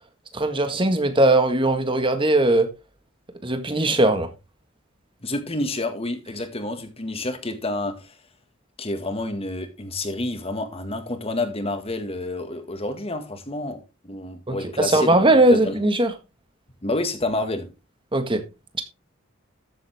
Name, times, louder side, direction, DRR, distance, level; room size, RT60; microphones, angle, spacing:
voice 1, 0.3-2.7 3.4-4.3 14.5-16.1 18.1-18.4, right 2 dB, 25° right, 1.6 m, -19 dB
voice 2, 5.2-8.1 8.8-15.2 15.5-15.8 16.8-17.7, left 2 dB, 30° left, 1.8 m, -29 dB
13.5 x 7.5 x 3.5 m
head